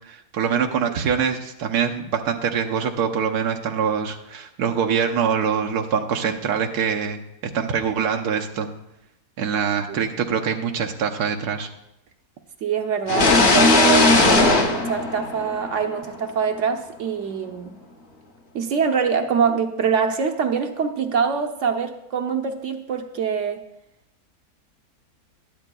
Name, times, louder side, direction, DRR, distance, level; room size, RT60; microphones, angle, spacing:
voice 1, 0.1-8.7 9.4-11.7, right 7 dB, 90° right, 2 dB, 1.3 m, -24 dB
voice 2, 12.6-17.8 18.5-23.6, right 6 dB, 60° right, 5 dB, 0.9 m, -24 dB
sound 1, 13.1-15.9, left 2 dB, 45° left, 1.1 m, -17 dB
12.5 x 10.5 x 2.3 m, 0.86 s
omnidirectional pair, 1.6 m